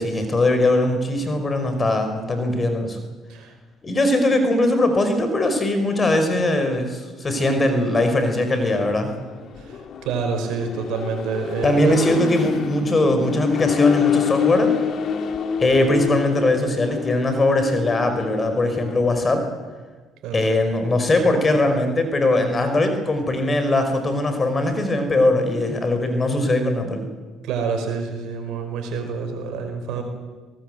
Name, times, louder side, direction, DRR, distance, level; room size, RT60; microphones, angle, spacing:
voice 1, 0.0-3.0 3.8-9.1 11.6-14.7 15.6-19.5 20.3-27.1 29.9-30.0, left 1 dB, 30° left, 7 dB, 5.4 m, -20 dB
Accelerating revving vroom, 8.6-19.0, left 8 dB, 55° left, 2.4 m, -27 dB
voice 2, 9.6-12.0 20.2-20.6 27.4-30.0, right 5 dB, 70° right, 6 dB, 4.8 m, -27 dB
24.0 x 18.5 x 8.1 m, 1.4 s
supercardioid pair, 65°, 0 cm